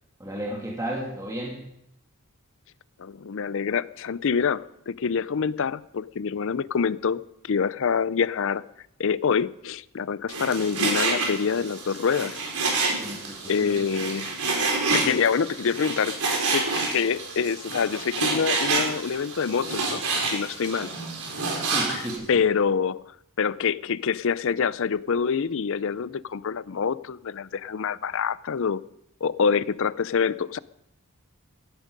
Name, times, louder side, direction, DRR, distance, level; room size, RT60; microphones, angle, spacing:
voice 1, 0.2-1.6 12.9-13.8 21.7-22.3, right 1 dB, 15° right, -2 dB, 2.4 m, -33 dB
voice 2, 3.0-8.6 9.0-12.4 13.5-14.3 14.9-16.1 16.5-20.9 21.9-23.0 23.4-28.8 29.2-30.6, left 6 dB, 60° left, 18 dB, 0.5 m, -26 dB
Frying (food), 10.3-22.2, right 3 dB, 80° right, 4.3 m, -28 dB
17.0 x 12.0 x 5.3 m, 0.79 s
head